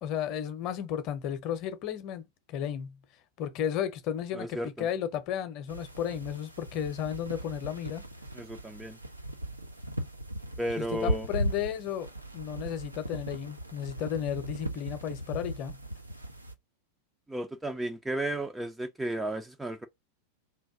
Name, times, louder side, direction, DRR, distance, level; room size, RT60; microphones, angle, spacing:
voice 1, 0.0-3.0 3.4-8.0 10.8-15.8, left 9 dB, 40° left, 0.7 m, -34 dB
voice 2, 4.3-4.9 8.4-9.0 10.6-11.3 17.3-19.9, right 1 dB, 5° right, 0.4 m, -34 dB
sound 1, 5.7-16.5, right 1 dB, 85° right, 0.6 m, -38 dB
3.4 x 2.5 x 3.5 m
figure-of-eight pair, 90°, 0 cm